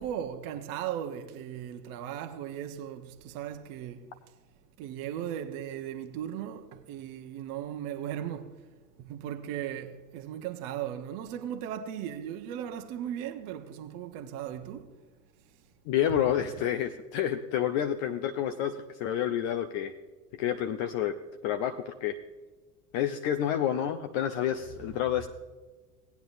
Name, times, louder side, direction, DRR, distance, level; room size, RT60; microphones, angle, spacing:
voice 1, 0.0-4.0 4.8-8.6 9.0-14.9 16.1-16.2 24.9-25.0, right 10 dB, 40° right, 1.0 m, -37 dB
voice 2, 15.9-19.9 20.3-21.2 21.4-22.2 22.9-25.3, left 10 dB, 35° left, 0.5 m, -29 dB
17.5 x 9.3 x 2.6 m
figure-of-eight pair, 80°, 47 cm